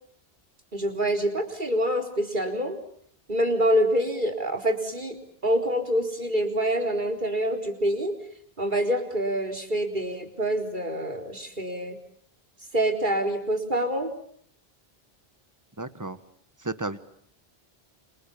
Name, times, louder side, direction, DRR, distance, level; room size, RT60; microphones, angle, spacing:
voice 1, 0.7-2.8 3.3-5.2 5.4-8.1 8.6-12.0 12.7-14.1, equal, 50° right, 4 dB, 4.4 m, -26 dB
voice 2, 15.8-16.2 16.6-17.0, right 2 dB, 15° right, 12 dB, 1.5 m, -32 dB
29.0 x 28.5 x 7.2 m, 0.64 s
omnidirectional pair, 1.0 m